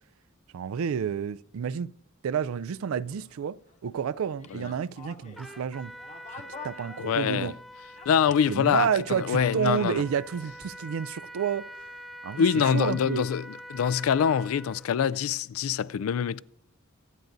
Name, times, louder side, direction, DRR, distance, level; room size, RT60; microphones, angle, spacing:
voice 1, 0.5-1.9 2.2-5.9 6.6-7.5 8.5-11.7 12.2-13.3, right 7 dB, 80° right, 0.4 m, -30 dB
sound 1, 2.5-7.6 7.9-10.7, left 4 dB, 35° left, 0.9 m, -49 dB
Trumpet, 5.3-14.9, equal, ahead, 0.5 m, -45 dB
voice 2, 7.0-7.5 8.1-10.0 12.4-13.4 13.7-16.4, left 7 dB, 85° left, 0.3 m, -25 dB
23.5 x 9.2 x 2.6 m
head